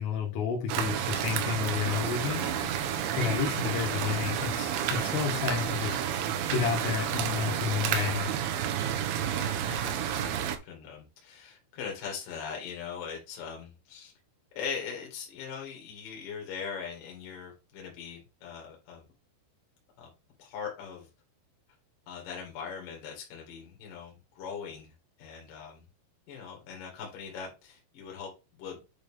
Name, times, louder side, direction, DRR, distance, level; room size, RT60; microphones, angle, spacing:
voice 1, 0.0-2.5 3.2-6.0 6.5-8.3, left 8 dB, 85° left, 3.9 m, -31 dB
sound 1, 0.7-10.6, right 9 dB, 85° right, 3.2 m, -31 dB
sound 2, 1.8-8.2, right 6 dB, 65° right, 3.1 m, -41 dB
voice 2, 2.4-2.8 9.2-14.1 14.6-19.1 20.0-20.1 20.4-21.1 22.1-24.9 25.2-25.8 26.3-28.3 28.6-28.8, left 6 dB, 55° left, 2.8 m, -41 dB
8.6 x 4.0 x 3.4 m
omnidirectional pair, 5.6 m